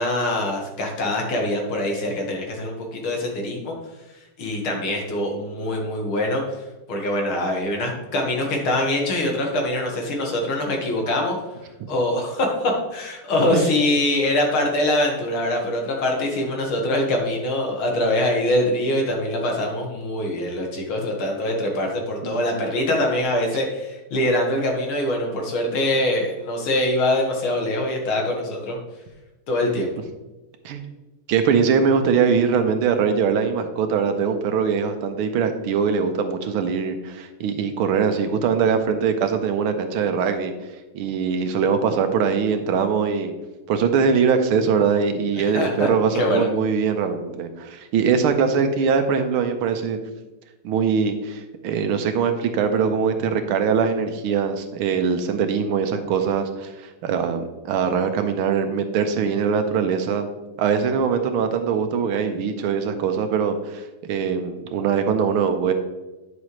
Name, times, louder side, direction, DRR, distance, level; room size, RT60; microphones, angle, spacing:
voice 1, 0.0-3.7 4.1-6.4 6.9-11.4 11.9-28.8 29.5-29.9 45.4-45.9 46.1-46.5, left 1 dB, 75° left, 1 dB, 2.3 m, -23 dB
voice 2, 22.2-22.7 30.6-30.8 31.3-40.5 40.9-43.3 43.7-50.0 50.6-60.2 60.6-65.7, right 6 dB, 80° right, 7 dB, 1.6 m, -22 dB
9.8 x 6.1 x 3.1 m, 1.1 s
omnidirectional pair, 2.4 m